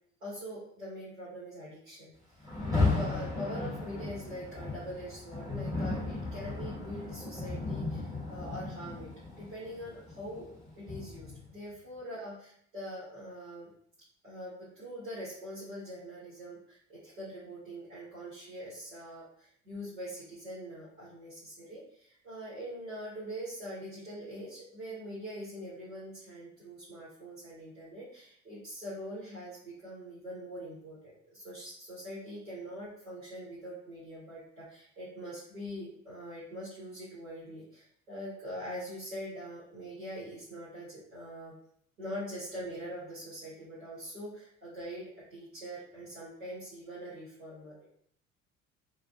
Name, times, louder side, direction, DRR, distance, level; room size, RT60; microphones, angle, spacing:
voice 1, 0.2-2.1 2.4-10.5 10.8-12.3 12.7-13.7 14.2-41.5 42.0-47.8, equal, 80° right, -10 dB, 1.2 m, -43 dB
Rain, 2.4-11.5, left 3 dB, 10° right, 1.3 m, -35 dB
2.5 x 2.4 x 2.3 m, 0.66 s
hypercardioid pair, 60°, 40 cm